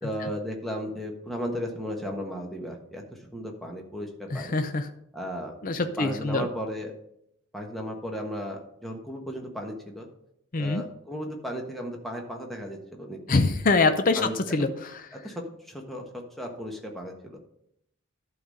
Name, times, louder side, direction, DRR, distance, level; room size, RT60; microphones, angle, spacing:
voice 1, 0.0-4.6 5.1-6.9 7.5-10.1 10.6-13.4 14.1-14.7 15.1-16.0 16.4-17.4, equal, ahead, 0 dB, 1.3 m, -35 dB
voice 2, 4.3-4.8 5.6-6.5 10.5-10.8 13.3-14.7, left 3 dB, 40° left, 8 dB, 0.6 m, -24 dB
11.5 x 4.0 x 6.4 m, 0.77 s
head